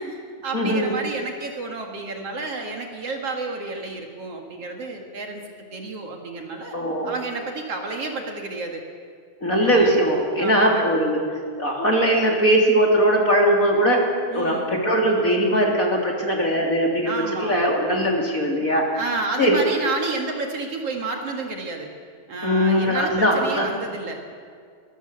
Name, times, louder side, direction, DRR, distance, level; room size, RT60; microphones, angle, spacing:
voice 1, 0.0-5.4 5.7-6.8 7.0-8.8 9.6-10.0 10.4-10.9 14.3-14.8 16.5-16.7 17.0-17.6 17.9-18.2 18.9-21.9 22.3-24.3, right 3 dB, 55° right, 3 dB, 3.0 m, -31 dB
voice 2, 0.5-0.9 6.7-7.1 9.4-11.2 11.6-14.0 14.3-17.1 17.4-18.8 19.4-19.6 22.4-23.7, equal, 25° left, 0 dB, 3.5 m, -20 dB
24.0 x 21.0 x 8.0 m, 2.1 s
omnidirectional pair, 3.4 m